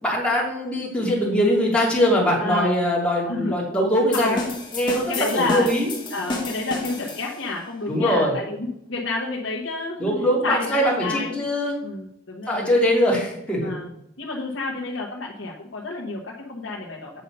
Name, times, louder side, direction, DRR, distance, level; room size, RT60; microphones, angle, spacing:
voice 1, 0.0-4.4 4.7-5.9 7.9-8.4 10.0-11.7 12.5-13.7, equal, 5° left, -4 dB, 2.6 m, -22 dB
voice 2, 2.4-2.8 3.2-3.6 4.1-4.4 5.1-5.7 6.1-10.1 10.4-11.3 11.8-12.7 13.6-13.9 14.2-17.1, left 2 dB, 90° left, -2 dB, 1.1 m, -29 dB
sound 1, 4.1-7.6, left 3 dB, 25° left, 1.7 m, -31 dB
8.1 x 5.5 x 5.3 m, 0.81 s
head